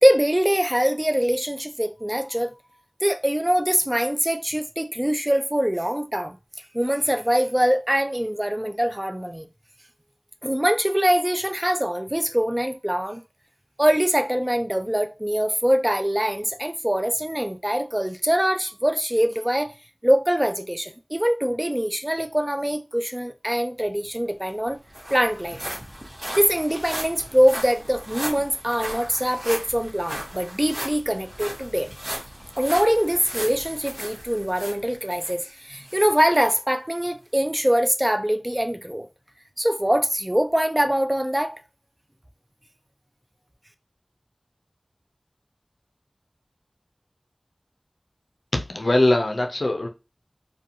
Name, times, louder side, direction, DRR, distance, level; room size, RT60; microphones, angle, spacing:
voice 1, 0.0-2.5 3.0-6.4 6.7-9.5 10.4-13.2 13.8-19.7 20.0-24.8 25.1-25.6 26.4-31.9 32.6-39.1 39.6-41.6, equal, 15° right, 0.4 m, -23 dB
sound 1, 24.1-24.2 24.5-35.4 35.8-36.0 36.5-36.6, equal, 50° right, 1.0 m, -36 dB
voice 2, 48.5-49.9, left 1 dB, 70° left, 0.4 m, -21 dB
2.5 x 2.2 x 2.7 m
wide cardioid pair, 45°, 0 cm